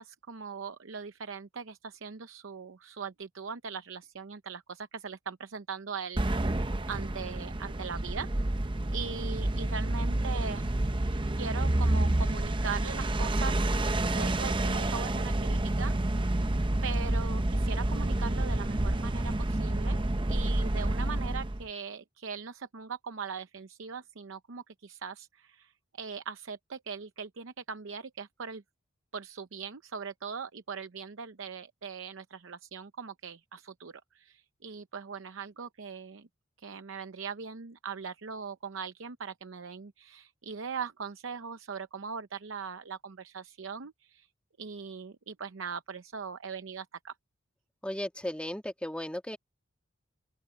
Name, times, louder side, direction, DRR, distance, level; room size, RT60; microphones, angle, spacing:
voice 1, 0.0-8.3 8.9-10.7 11.3-16.3 16.8-28.6 29.1-36.3 36.6-44.3 44.6-47.1, right 6 dB, 75° right, 0.7 m, -40 dB
sound 1, 6.2-21.7, right 1 dB, 25° right, 0.7 m, -29 dB
voice 2, 47.8-49.4, left 1 dB, 5° left, 2.0 m, -35 dB
open air
head